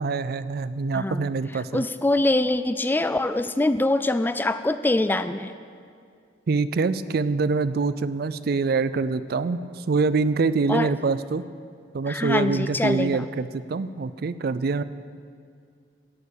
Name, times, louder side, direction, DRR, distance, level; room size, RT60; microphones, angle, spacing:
voice 1, 0.0-1.8 6.5-11.5 11.9-14.8, right 4 dB, 55° right, 15 dB, 0.4 m, -25 dB
voice 2, 0.9-1.3 1.5-5.5 10.7-10.9 12.1-13.2, left 2 dB, 10° left, 12 dB, 0.3 m, -24 dB
11.0 x 8.9 x 8.4 m, 2.3 s
head